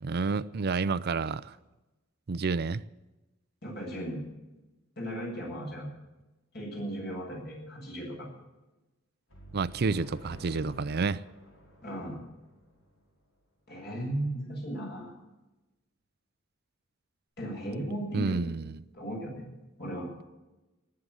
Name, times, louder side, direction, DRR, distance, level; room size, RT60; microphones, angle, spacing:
voice 1, 0.0-1.5 2.3-2.8 9.5-11.2 18.1-18.8, right 4 dB, 50° right, 0.5 m, -29 dB
voice 2, 3.6-4.2 5.0-5.9 6.5-8.3 11.8-12.2 13.7-15.1 17.4-18.4 18.9-19.5 19.8-20.1, right 1 dB, 55° left, 7.7 m, -36 dB
sound 1, 9.3-13.0, right 1 dB, 70° left, 5.0 m, -50 dB
19.0 x 8.7 x 7.9 m
head